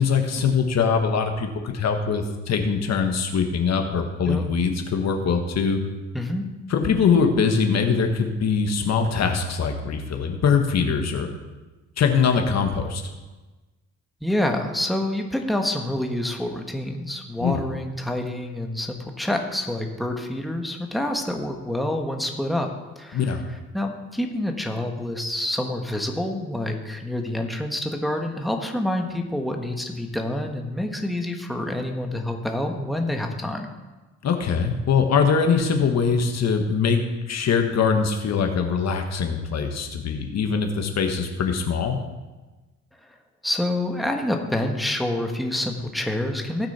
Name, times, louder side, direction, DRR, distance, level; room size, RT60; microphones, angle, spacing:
voice 1, 0.0-5.8 6.7-11.3 12.0-13.0 17.4-17.5 23.1-23.4 34.2-37.0 37.3-42.0, left 5 dB, 60° left, 5 dB, 1.4 m, -22 dB
voice 2, 6.1-6.5 14.2-22.7 23.0-23.4 23.7-33.7 43.1-43.2 43.4-46.7, left 1 dB, ahead, 3 dB, 1.3 m, -27 dB
17.0 x 6.1 x 4.3 m, 1.2 s
cardioid pair, 90°, 30 cm